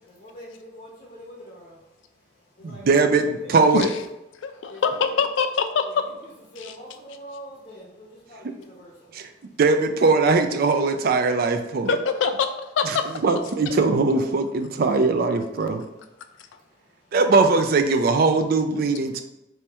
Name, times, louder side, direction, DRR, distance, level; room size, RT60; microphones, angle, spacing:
voice 1, 0.1-0.5 0.8-1.8 2.6-3.1 3.4-3.5 4.7-5.2 5.8-9.1, equal, 35° left, -7 dB, 0.9 m, -44 dB
voice 2, 2.6-3.9 8.4-8.5 9.1-9.3 9.6-12.0 12.8-13.0 13.2-15.8 17.1-19.2, right 3 dB, 50° right, 7 dB, 0.4 m, -20 dB
voice 3, 4.4-6.0 6.6-6.8 11.9-13.0, left 5 dB, 75° left, 8 dB, 0.4 m, -24 dB
3.1 x 2.9 x 3.4 m, 0.91 s
head